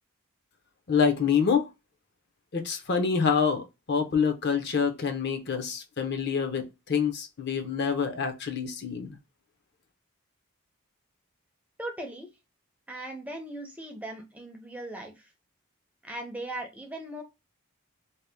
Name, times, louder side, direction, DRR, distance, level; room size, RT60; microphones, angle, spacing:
voice 1, 0.9-1.7 2.5-9.2, left 6 dB, 50° left, 0.6 m, -26 dB
voice 2, 11.8-12.3 12.9-15.3 16.0-17.2, right 1 dB, 5° right, 0.5 m, -38 dB
2.7 x 2.1 x 3.3 m
head